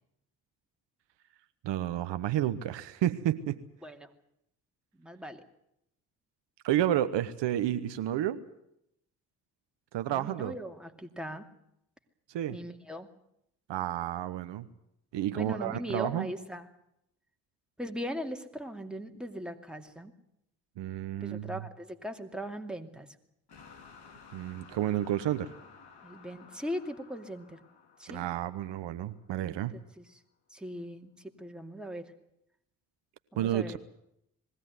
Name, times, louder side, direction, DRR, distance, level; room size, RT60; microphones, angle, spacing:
voice 1, 1.6-3.6 6.6-8.4 9.9-10.5 12.3-12.6 13.7-14.7 15.1-16.3 20.8-21.5 24.3-25.5 28.1-29.8 33.4-33.8, right 12 dB, 65° right, 12 dB, 1.0 m, -31 dB
voice 2, 5.0-5.4 10.1-11.5 12.5-13.1 15.3-16.6 17.8-20.1 21.2-23.1 26.0-27.6 28.0-28.2 29.7-30.1 30.5-32.1 33.3-33.8, equal, ahead, 4 dB, 2.5 m, -39 dB
sound 1, 23.5-29.5, left 5 dB, 55° left, 3.1 m, -55 dB
21.0 x 16.0 x 9.4 m, 0.78 s
hypercardioid pair, 45°, 47 cm